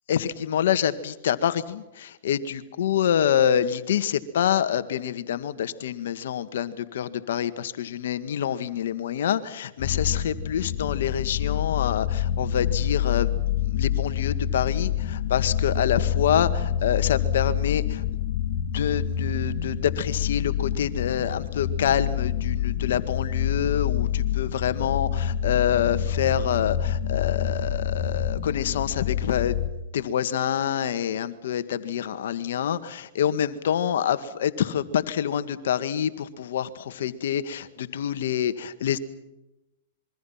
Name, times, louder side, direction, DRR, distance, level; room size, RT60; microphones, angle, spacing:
voice 1, 0.1-18.0 18.7-29.6 29.9-39.0, left 9 dB, 75° left, 12 dB, 1.8 m, -26 dB
sound 1, 9.8-29.7, left 9 dB, 60° left, 3.0 m, -27 dB
26.0 x 23.5 x 5.9 m, 0.94 s
hypercardioid pair, 125°, 0 cm